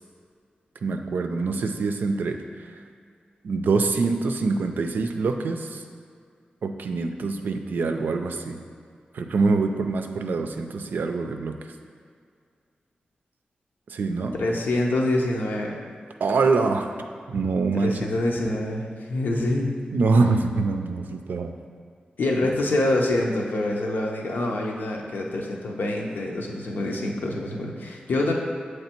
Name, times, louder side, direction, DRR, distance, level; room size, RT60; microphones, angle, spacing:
voice 1, 0.8-2.4 3.4-5.8 6.6-8.6 9.1-11.6 13.9-14.3 16.2-16.9 17.3-17.9 19.9-21.5, right 4 dB, 85° right, 5 dB, 0.4 m, -24 dB
voice 2, 14.3-15.8 17.8-19.7 22.2-28.3, left 1 dB, 85° left, 0 dB, 0.7 m, -26 dB
6.9 x 3.3 x 4.3 m, 2.1 s
wide cardioid pair, 105°, 3 cm